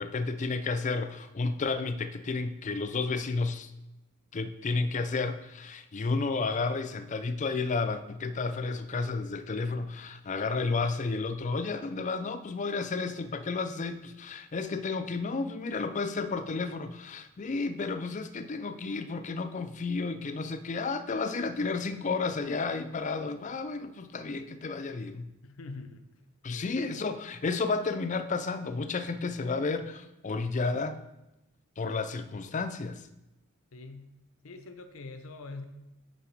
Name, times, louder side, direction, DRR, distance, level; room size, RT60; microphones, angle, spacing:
voice 1, 0.0-3.7 4.3-25.3 26.4-31.0 31.8-33.1, left 4 dB, 35° left, 10 dB, 0.4 m, -32 dB
voice 2, 25.4-26.1 26.5-26.7 33.7-34.1 34.4-35.7, left 3 dB, 75° left, 8 dB, 0.6 m, -44 dB
6.9 x 5.7 x 4.6 m, 0.94 s
head